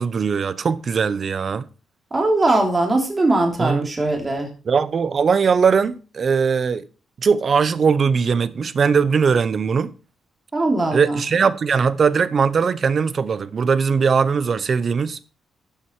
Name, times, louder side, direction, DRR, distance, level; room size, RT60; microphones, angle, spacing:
voice 1, 0.0-1.7 3.6-3.9 4.7-6.9 7.2-9.9 10.9-15.2, right 6 dB, 40° right, 0.8 m, -20 dB
voice 2, 2.1-4.5 10.5-11.2, right 2 dB, 20° right, 3.2 m, -20 dB
12.5 x 7.9 x 4.6 m
cardioid pair, 140°, 0 cm